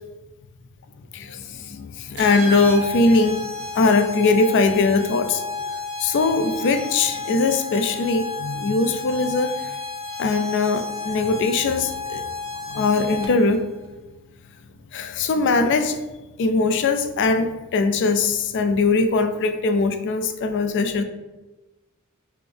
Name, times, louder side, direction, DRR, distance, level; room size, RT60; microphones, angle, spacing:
voice 1, 1.1-3.4 3.7-5.4 6.0-9.5 10.2-12.2 12.7-13.6 14.9-16.0 16.4-21.0, left 3 dB, 55° left, 9 dB, 0.4 m, -21 dB
sound 1, 2.2-13.6, left 3 dB, 85° right, 0.9 m, -32 dB
3.3 x 2.9 x 3.7 m, 1.1 s
head